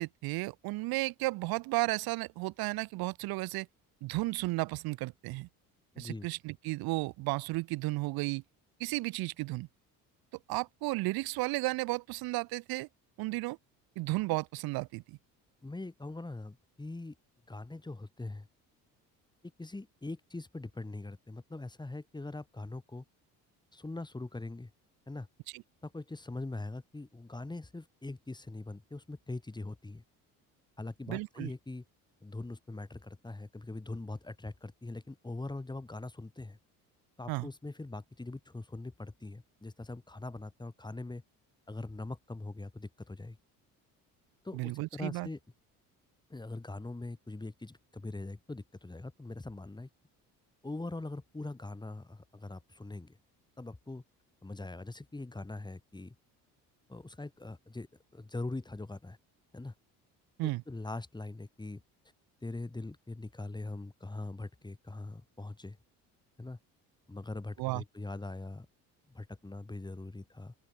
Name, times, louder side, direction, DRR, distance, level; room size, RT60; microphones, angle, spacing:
voice 1, 0.0-3.7 4.0-5.5 6.0-8.4 8.8-9.7 10.5-12.9 13.2-13.6 13.9-15.2 25.5-25.6 31.1-31.5 37.3-37.5 44.5-45.3 60.4-60.6 67.6-67.8, right 21 dB, 85° right, 3.3 m, -33 dB
voice 2, 5.9-6.3 15.6-17.1 17.5-18.5 19.6-23.0 23.7-24.7 25.1-25.3 25.8-30.0 30.8-31.8 32.2-36.6 37.2-41.2 41.7-43.4 44.4-45.4 46.3-49.9 50.6-53.2 53.6-54.0 54.4-56.1 56.9-57.9 58.1-59.2 59.5-59.7 60.7-61.8 62.4-65.8 66.4-66.6 67.1-68.7 69.1-70.5, left 2 dB, 10° left, 2.7 m, -42 dB
open air
cardioid pair, 95°, 35 cm